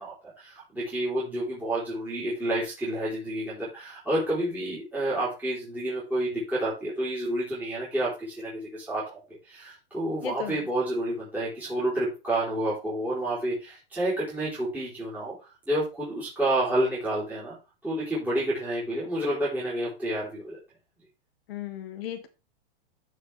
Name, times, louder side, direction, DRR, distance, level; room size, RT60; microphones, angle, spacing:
voice 1, 0.0-15.3 15.7-17.6 17.8-20.6, right 1 dB, 5° right, 3.8 m, -29 dB
voice 2, 10.2-10.7 21.5-22.3, left 10 dB, 75° left, 1.8 m, -35 dB
13.0 x 4.8 x 3.4 m
hypercardioid pair, 140°, 30 cm